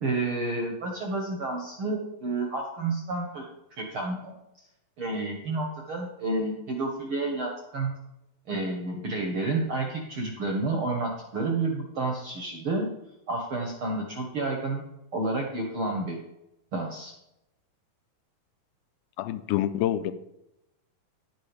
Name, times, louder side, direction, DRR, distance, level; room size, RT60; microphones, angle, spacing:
voice 1, 0.0-3.4 3.7-4.3 5.0-7.9 8.5-12.9 13.3-14.8 15.1-16.2 16.7-17.1, right 2 dB, 55° right, 1.5 m, -30 dB
voice 2, 19.2-20.1, left 12 dB, 90° left, 2.4 m, -27 dB
11.5 x 7.7 x 5.0 m
omnidirectional pair, 4.2 m